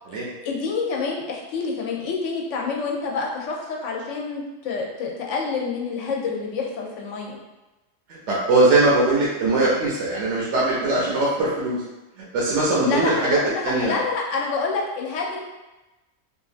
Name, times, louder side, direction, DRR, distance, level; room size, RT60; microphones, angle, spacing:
voice 1, 0.4-7.4 12.8-15.4, left 4 dB, 75° left, -1 dB, 0.9 m, -27 dB
voice 2, 8.1-11.8 12.2-14.0, right 2 dB, 70° right, -6 dB, 0.9 m, -21 dB
2.8 x 2.3 x 2.4 m, 1.1 s
omnidirectional pair, 1.3 m